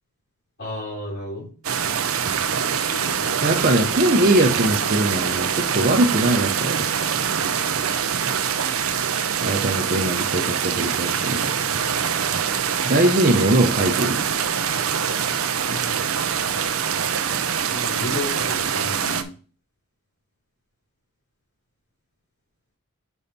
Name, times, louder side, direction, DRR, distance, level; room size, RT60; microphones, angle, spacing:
voice 1, 0.6-1.5 2.9-3.9 15.7-16.0 17.7-19.3, left 2 dB, 50° left, -8 dB, 3.5 m, -33 dB
sound 1, 1.6-19.2, right 7 dB, 65° right, 0.6 m, -24 dB
voice 2, 3.4-7.1 9.4-11.5 12.9-14.2, right 1 dB, 40° right, 1 dB, 0.8 m, -21 dB
5.5 x 5.3 x 4.2 m, 0.39 s
head